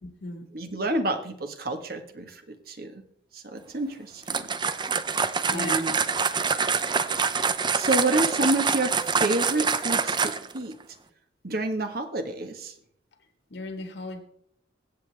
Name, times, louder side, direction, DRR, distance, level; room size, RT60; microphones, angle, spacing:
voice 1, 0.0-0.5 5.5-5.9 13.5-14.2, left 2 dB, 70° left, 2.0 m, -36 dB
voice 2, 0.5-3.0 3.3-4.5 5.5-6.0 7.7-10.8 11.4-12.7, right 2 dB, 55° right, 1.5 m, -29 dB
sound 1, 4.2-10.6, right 5 dB, 25° right, 0.6 m, -25 dB
23.0 x 8.4 x 3.5 m
head